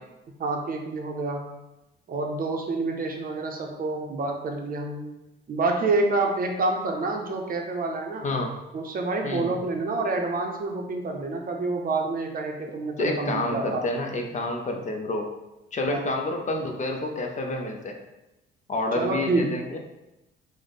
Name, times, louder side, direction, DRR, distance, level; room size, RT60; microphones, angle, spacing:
voice 1, 0.4-1.5 2.1-5.1 5.5-8.2 8.7-13.8 15.8-16.1 18.9-19.5, right 3 dB, 45° right, 2 dB, 0.6 m, -28 dB
voice 2, 8.2-8.6 9.2-9.6 13.0-15.3 15.7-18.0 18.7-19.8, left 2 dB, 40° left, 3 dB, 0.5 m, -29 dB
3.1 x 2.1 x 3.9 m, 0.95 s
cardioid pair, 90°, 20 cm